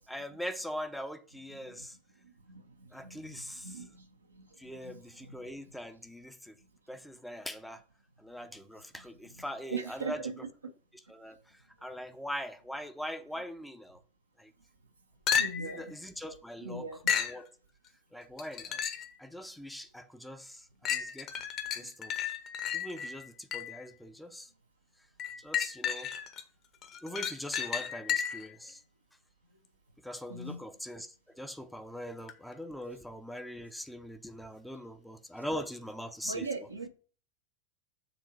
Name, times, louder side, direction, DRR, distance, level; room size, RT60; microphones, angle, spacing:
voice 1, 0.0-2.0 2.9-3.8 4.6-6.6 6.9-7.8 8.2-10.2 11.1-14.0 14.4-14.5 15.6-17.5 18.1-18.8 19.2-21.3 21.7-22.2 22.7-24.5 25.4-26.1 27.0-28.8 30.0-36.5, equal, ahead, 0.6 m, -42 dB
voice 2, 1.5-1.9 2.2-5.3 9.7-10.3 10.6-10.7 15.3-15.9 16.6-17.0 21.8-21.9 30.3-30.6 36.2-36.9, right 4 dB, 80° right, 1.0 m, -41 dB
sound 1, 15.3-15.8 17.1-17.4 18.4-19.1 19.7-19.8 20.8-23.8 25.2-26.4 26.8-28.5 32.3-32.4, left 8 dB, 35° left, 0.9 m, -33 dB
7.2 x 3.6 x 6.2 m
figure-of-eight pair, 90°, 0 cm